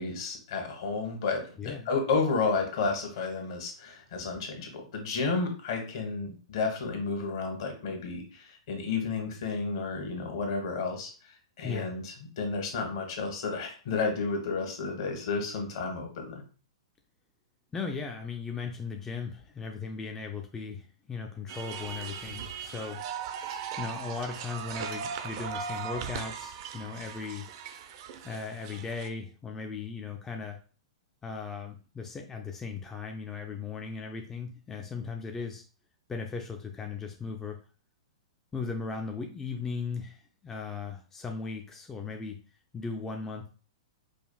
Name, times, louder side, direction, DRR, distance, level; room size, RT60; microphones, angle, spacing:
voice 1, 0.0-16.4, left 4 dB, 55° left, 4 dB, 1.1 m, -32 dB
voice 2, 1.6-1.9 11.6-11.9 17.7-23.2 23.8-27.5 28.2-30.6 31.2-35.6 36.1-37.6 38.5-42.4 42.7-43.5, left 5 dB, 15° left, 3 dB, 0.4 m, -37 dB
sound 1, 21.5-29.1, right 7 dB, 45° right, 0.5 m, -38 dB
4.9 x 2.4 x 2.3 m, 0.38 s
figure-of-eight pair, 110°, 3 cm